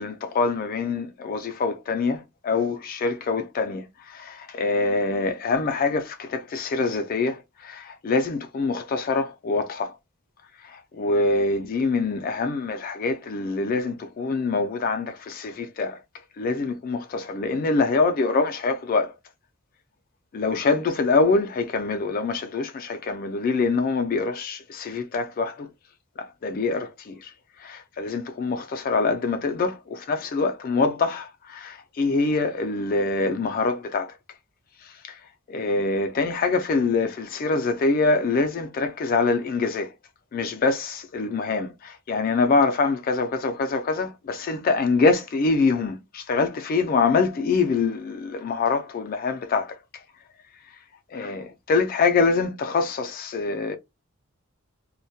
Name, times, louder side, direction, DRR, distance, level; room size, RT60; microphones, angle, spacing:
voice 1, 0.0-10.0 10.6-16.0 16.4-19.1 20.3-25.7 26.2-27.3 27.6-34.1 34.8-35.2 35.5-39.9 40.3-49.8 51.1-53.8, left 4 dB, 40° left, 0.3 m, -25 dB
2.2 x 2.1 x 2.6 m
head